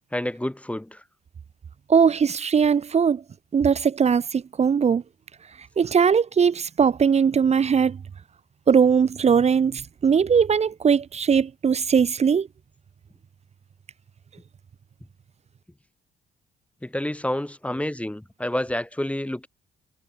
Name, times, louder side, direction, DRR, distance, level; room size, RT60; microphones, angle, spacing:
voice 1, 0.1-1.0 16.8-19.5, left 1 dB, 5° left, 1.1 m, -29 dB
voice 2, 1.9-3.2 3.5-5.0 5.8-8.0 8.7-12.5, right 6 dB, 35° right, 0.5 m, -20 dB
cardioid pair, 90°, 20 cm